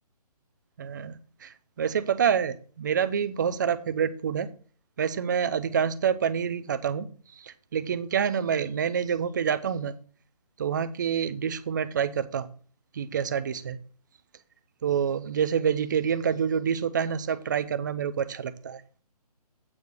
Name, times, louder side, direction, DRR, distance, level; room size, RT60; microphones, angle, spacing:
voice 1, 0.8-1.1 1.4-4.5 5.0-7.1 7.4-9.9 10.6-12.5 13.0-13.8 14.8-18.8, right 7 dB, 30° right, 0.5 m, -27 dB
8.7 x 4.6 x 6.6 m
hypercardioid pair, 160°, 20 cm